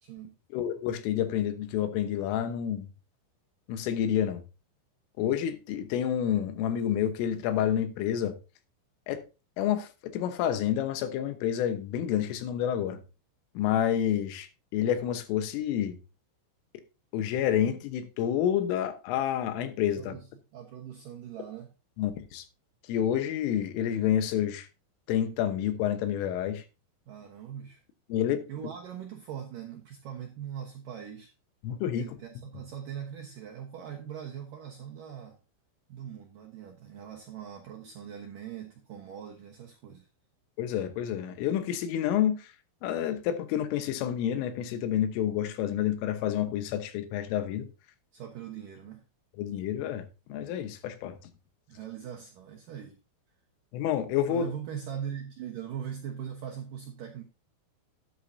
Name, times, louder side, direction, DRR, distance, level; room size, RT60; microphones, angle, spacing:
voice 1, 0.0-0.3 20.0-20.3 20.5-21.7 27.1-27.8 28.5-31.3 32.0-35.4 35.9-40.1 48.1-49.0 51.7-53.0 54.3-57.2, right 9 dB, 75° right, 2.0 m, -41 dB
voice 2, 0.5-2.9 3.7-4.4 5.2-8.4 9.1-9.2 9.6-13.0 13.6-14.5 14.7-16.0 17.1-20.1 22.0-22.5 22.9-24.7 25.1-26.6 28.1-28.4 31.6-32.2 40.6-42.5 42.8-47.7 49.4-50.0 50.3-51.2 53.7-54.5, left 10 dB, 85° left, 3.7 m, -29 dB
12.5 x 10.5 x 2.7 m
omnidirectional pair, 5.7 m